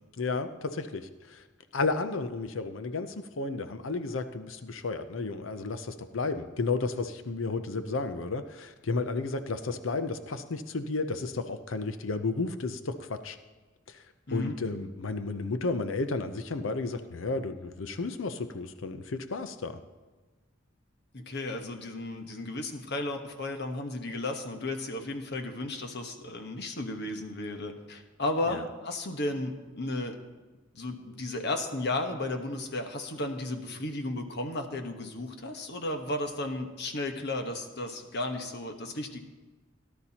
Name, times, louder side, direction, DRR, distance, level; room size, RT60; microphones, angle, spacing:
voice 1, 0.2-1.4 1.7-13.4 13.9-14.0 14.3-19.8 28.5-28.6, left 3 dB, 75° left, 9 dB, 0.7 m, -32 dB
voice 2, 21.1-30.2 30.7-39.2, left 2 dB, 55° left, 5 dB, 1.2 m, -34 dB
17.5 x 11.5 x 2.9 m, 1.3 s
head